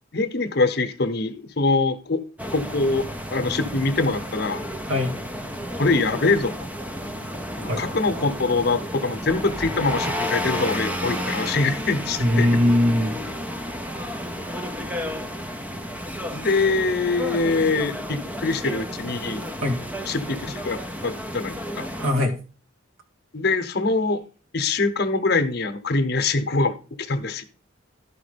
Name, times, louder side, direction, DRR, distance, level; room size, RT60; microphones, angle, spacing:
voice 1, 0.1-2.2 2.5-4.6 5.8-6.5 7.6-12.5 16.3-19.4 20.1-21.9 23.3-24.2 24.5-27.4, left 3 dB, 50° left, 9 dB, 0.9 m, -24 dB
sound 1, 2.4-22.1, equal, 5° right, 0.5 m, -32 dB
voice 2, 12.2-13.2 19.6-19.8 22.0-22.4, left 1 dB, 75° right, 3 dB, 2.0 m, -21 dB
11.5 x 5.1 x 5.1 m, 0.35 s
head